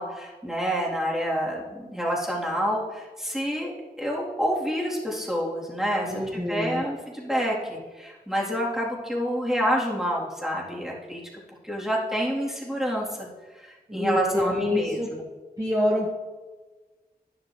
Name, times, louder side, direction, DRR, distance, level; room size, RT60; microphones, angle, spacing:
voice 1, 0.0-3.7 4.0-11.2 11.6-13.3 13.6-15.0, equal, 5° right, -5 dB, 3.5 m, -28 dB
voice 2, 6.1-6.8 13.9-15.1 15.6-16.1, left 1 dB, 20° right, -4 dB, 1.7 m, -26 dB
11.0 x 11.0 x 3.3 m, 1.3 s
wide cardioid pair, 55°, 16 cm